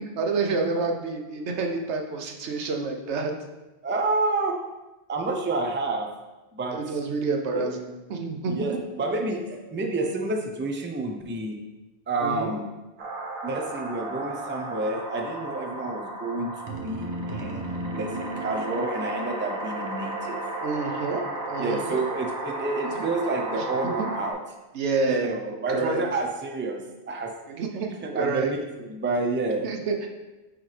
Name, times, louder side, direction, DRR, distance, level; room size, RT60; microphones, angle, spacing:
voice 1, 0.2-3.3 6.7-8.7 12.2-12.6 20.6-22.0 22.9-23.1 24.0-24.1 24.7-25.3 25.7-26.0 27.5-27.9 28.1-28.5 29.6-30.1, right 4 dB, 85° right, 3 dB, 1.1 m, -28 dB
voice 2, 3.8-4.6 5.1-6.1 6.5-6.8 7.5-7.7 8.5-11.6 12.1-12.7 13.4-20.4 21.6-24.4 25.1-27.4 28.0-29.6, right 2 dB, 15° right, 3 dB, 0.4 m, -29 dB
sound 1, 13.0-24.3, right 2 dB, 65° right, 1.2 m, -34 dB
9.4 x 4.0 x 3.3 m, 1.1 s
omnidirectional pair, 1.1 m